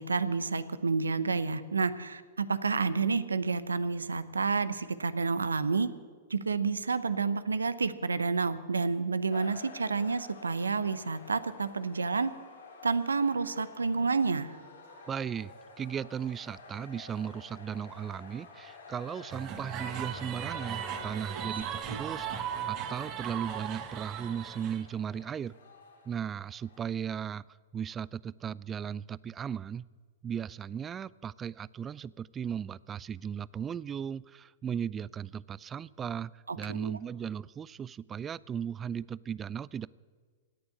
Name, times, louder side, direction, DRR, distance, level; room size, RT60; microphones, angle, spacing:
voice 1, 0.0-5.9 6.3-12.3 12.8-14.6 21.3-21.4 21.9-22.0 36.5-36.9, right 4 dB, 85° right, 14 dB, 0.7 m, -30 dB
sound 1, 9.3-26.9, left 3 dB, 70° left, 3.5 m, -51 dB
voice 2, 15.1-25.5 26.1-27.4 27.7-29.8 30.2-39.9, right 8 dB, 20° right, 22 dB, 0.4 m, -37 dB
sound 2, 19.3-24.8, right 9 dB, 40° right, 1.5 m, -37 dB
17.0 x 7.0 x 9.6 m, 1.5 s
hypercardioid pair, 105°, 0 cm